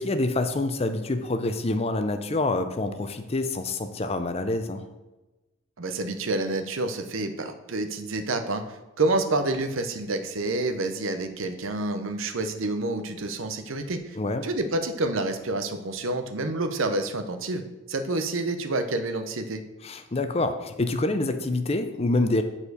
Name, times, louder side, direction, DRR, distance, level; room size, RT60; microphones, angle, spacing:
voice 1, 0.0-4.8 14.1-14.5 19.8-22.4, left 2 dB, 30° left, 9 dB, 0.5 m, -26 dB
voice 2, 5.8-19.6, right 2 dB, 75° right, 8 dB, 0.8 m, -28 dB
7.2 x 4.3 x 6.6 m, 1.1 s
head